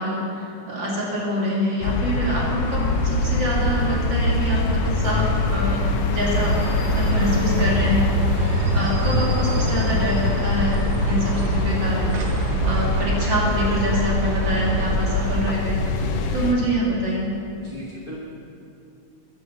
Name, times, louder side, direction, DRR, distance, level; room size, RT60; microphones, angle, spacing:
voice 1, 0.0-8.1 8.7-12.2 12.6-15.8 16.3-17.4, equal, 40° right, -4 dB, 2.4 m, -25 dB
sound 1, 1.8-16.5, left 2 dB, 75° left, 1.3 m, -24 dB
sound 2, 6.4-15.4, right 2 dB, 75° right, 1.2 m, -27 dB
voice 2, 17.6-18.2, left 1 dB, 50° left, -6 dB, 0.6 m, -38 dB
11.5 x 8.1 x 7.0 m, 2.7 s
omnidirectional pair, 3.8 m